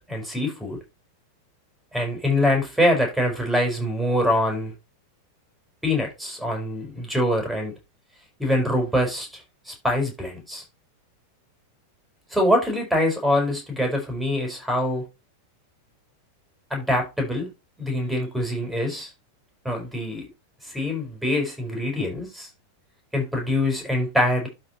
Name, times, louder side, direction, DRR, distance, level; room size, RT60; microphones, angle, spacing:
voice 1, 0.1-0.8 1.9-4.7 5.8-7.7 8.4-9.4 9.7-10.6 12.3-15.0 16.7-17.5 17.8-19.1 19.6-20.2 20.6-22.5 23.1-24.5, left 1 dB, ahead, 5.4 m, -24 dB
12.0 x 4.8 x 3.1 m
figure-of-eight pair, 90°, 0 cm